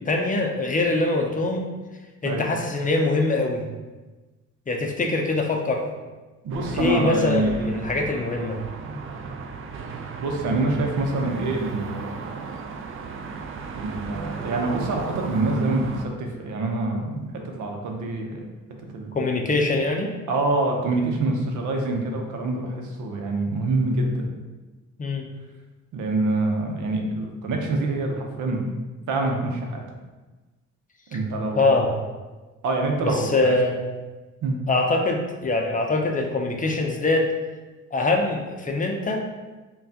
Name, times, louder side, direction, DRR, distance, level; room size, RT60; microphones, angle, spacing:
voice 1, 0.0-1.7 2.2-3.6 4.7-5.8 6.7-8.6 19.1-20.1 25.0-25.3 31.5-31.9 33.0-33.8 34.7-37.3 37.9-39.3, left 2 dB, 25° left, 1 dB, 0.5 m, -23 dB
voice 2, 6.4-7.6 10.2-12.3 13.7-15.9 16.2-18.4 18.9-19.1 20.3-24.2 25.9-28.7 29.1-29.8 31.1-31.7 32.6-33.5 34.4-34.6, right 2 dB, 75° right, 2 dB, 0.7 m, -26 dB
sound 1, 6.5-16.1, right 5 dB, 45° right, 0.4 m, -35 dB
5.4 x 2.3 x 2.7 m, 1.2 s
cardioid pair, 90°, 30 cm